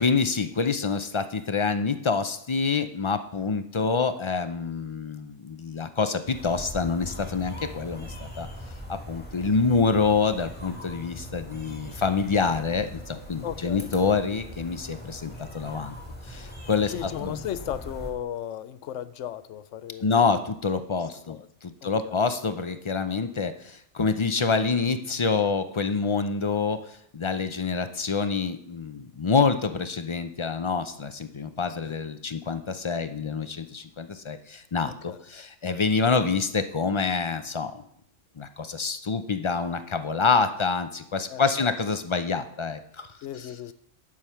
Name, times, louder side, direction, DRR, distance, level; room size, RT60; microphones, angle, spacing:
voice 1, 0.0-8.1 8.4-8.5 8.9-16.0 16.3-17.3 20.0-21.4 21.6-37.8 38.4-43.1, left 4 dB, 40° left, 0.4 m, -26 dB
sound 1, 6.3-18.1, equal, 10° left, 1.9 m, -41 dB
voice 2, 13.4-13.9 16.9-20.4 21.3-21.5 21.8-22.3 31.8-32.0 34.8-35.2 41.3-41.7 43.2-43.7, left 10 dB, 75° left, 0.9 m, -36 dB
11.0 x 6.4 x 5.7 m
omnidirectional pair, 1.3 m